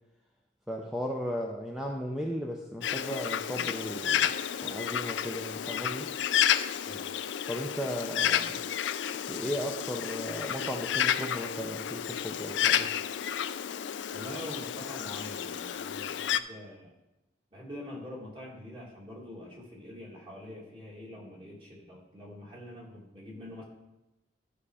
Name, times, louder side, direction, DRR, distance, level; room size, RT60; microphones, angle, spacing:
voice 1, 0.7-4.3 4.6-6.1 7.5-8.6 9.3-12.9, equal, 5° right, 0 dB, 0.6 m, -36 dB
Bird, 2.8-16.4, left 9 dB, 70° left, 0.4 m, -31 dB
voice 2, 14.1-16.9 17.5-23.6, left 1 dB, 30° right, -3 dB, 2.5 m, -44 dB
12.5 x 5.6 x 4.9 m, 0.97 s
head